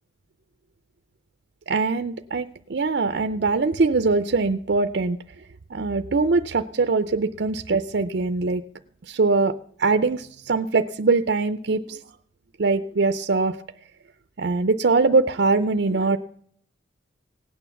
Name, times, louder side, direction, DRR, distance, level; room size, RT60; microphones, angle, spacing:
voice 1, 1.7-5.2 5.7-8.6 9.1-9.5 9.8-12.0 12.6-13.6 14.4-16.2, right 3 dB, 55° right, 9 dB, 0.5 m, -22 dB
17.0 x 9.3 x 7.0 m, 0.63 s
head